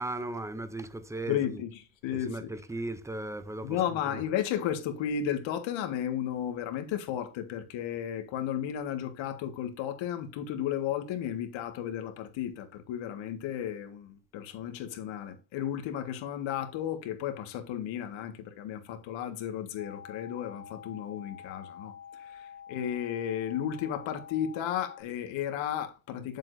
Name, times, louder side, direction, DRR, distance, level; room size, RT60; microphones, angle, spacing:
voice 1, 0.0-1.6 2.1-4.2, right 2 dB, 5° right, 0.6 m, -37 dB
voice 2, 1.3-1.7 2.0-2.5 3.6-26.4, left 10 dB, 65° left, 1.8 m, -34 dB
sound 1, 19.8-25.0, left 8 dB, 30° right, 1.2 m, -47 dB
9.6 x 7.6 x 2.7 m
cardioid pair, 170°, 49 cm